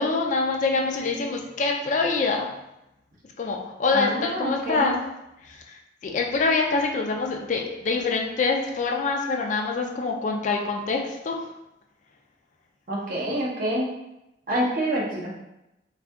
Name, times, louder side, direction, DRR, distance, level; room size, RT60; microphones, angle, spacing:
voice 1, 0.0-2.5 3.4-5.0 5.4-11.5, left 4 dB, 45° left, 1 dB, 0.4 m, -25 dB
voice 2, 3.9-4.9 12.9-13.9 14.5-15.4, right 1 dB, 50° right, -4 dB, 0.8 m, -27 dB
2.6 x 2.4 x 3.4 m, 0.90 s
head